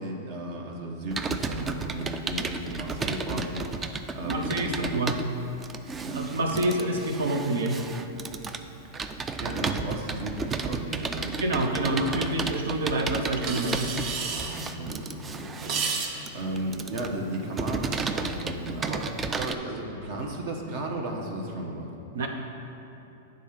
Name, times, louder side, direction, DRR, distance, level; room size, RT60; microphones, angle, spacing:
voice 1, 0.0-4.9 6.0-6.2 9.4-12.0 14.1-21.9, right 1 dB, 60° right, 0 dB, 1.1 m, -35 dB
Computer keyboard, 1.1-19.6, right 4 dB, 20° right, 0.4 m, -33 dB
voice 2, 4.2-5.2 6.1-7.8 11.4-13.9 22.1-22.3, right 1 dB, 80° right, 3 dB, 0.9 m, -27 dB
sound 1, 13.4-18.4, right 4 dB, 45° right, 0.8 m, -35 dB
9.1 x 3.8 x 5.8 m, 2.9 s
hypercardioid pair, 120°, 0 cm